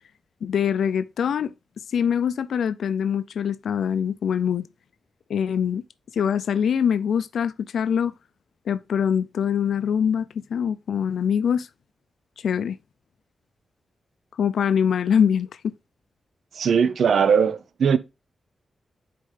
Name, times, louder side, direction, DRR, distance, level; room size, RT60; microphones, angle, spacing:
voice 1, 0.4-1.5 1.9-4.7 5.3-5.8 6.1-8.1 8.7-11.7 12.4-12.8 14.4-15.7, left 8 dB, 85° left, 0.4 m, -23 dB
voice 2, 16.5-18.0, right 6 dB, 70° right, 0.5 m, -19 dB
9.9 x 4.3 x 3.2 m
wide cardioid pair, 130°, 0 cm